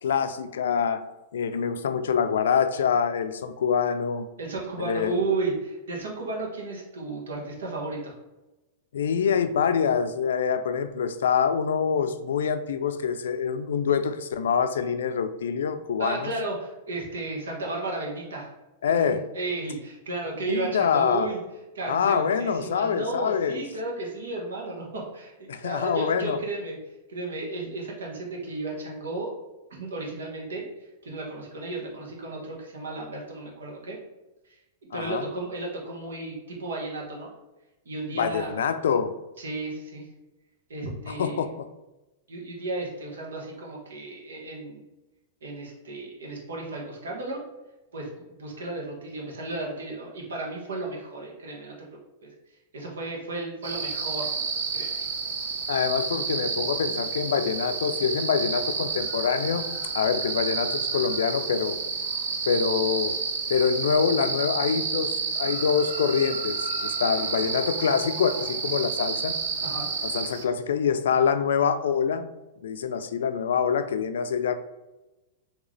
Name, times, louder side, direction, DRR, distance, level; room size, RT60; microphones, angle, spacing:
voice 1, 0.0-1.0 1.3-4.3 4.8-5.2 8.9-16.3 18.8-19.2 20.5-21.3 21.9-23.6 25.5-26.4 34.9-35.3 38.2-39.1 41.2-41.7 55.7-59.7 59.9-61.8 62.5-63.2 63.5-69.3 70.0-72.3 72.6-74.5, left 7 dB, 85° left, 10 dB, 0.3 m, -25 dB
voice 2, 4.4-8.1 16.0-18.5 18.9-21.4 21.7-25.3 25.6-26.8 27.1-29.3 29.7-30.6 31.0-34.0 34.5-34.6 34.9-37.3 37.8-38.6 39.4-40.1 40.7-41.5 42.3-44.8 45.4-47.4 47.9-51.9 52.2-52.3 52.7-54.3 54.7-55.0 69.6-69.9, right 2 dB, 90° right, -2 dB, 1.2 m, -33 dB
sound 1, 53.6-70.4, right 5 dB, 75° right, 0.6 m, -30 dB
3.8 x 2.9 x 3.2 m, 1.0 s
hypercardioid pair, 125°, 0 cm